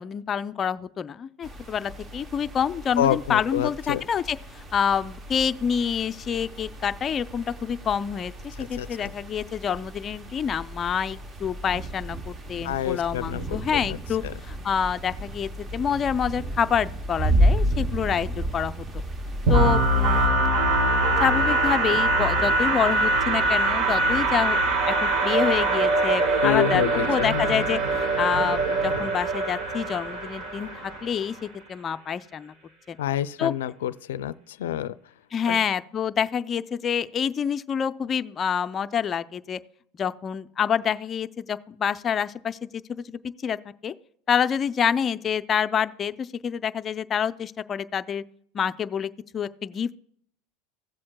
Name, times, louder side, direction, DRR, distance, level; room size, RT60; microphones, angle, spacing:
voice 1, 0.0-18.8 19.5-20.5 21.2-24.6 24.9-32.5 32.9-33.0 33.4-33.5 35.3-39.6 39.9-43.6 43.8-43.9 44.3-48.2 48.5-50.0, left 7 dB, 30° left, 0.4 m, -27 dB
sound 1, 1.4-20.3, equal, 25° right, 0.8 m, -32 dB
voice 2, 3.0-4.0 8.6-9.1 12.6-13.6 13.9-14.0 14.2-14.3 26.4-27.6 33.0-34.9 35.5-35.6, left 11 dB, 90° left, 0.4 m, -28 dB
sound 2, 19.5-31.2, right 2 dB, 55° right, 1.4 m, -23 dB
16.5 x 7.5 x 2.2 m
supercardioid pair, 125°, 0 cm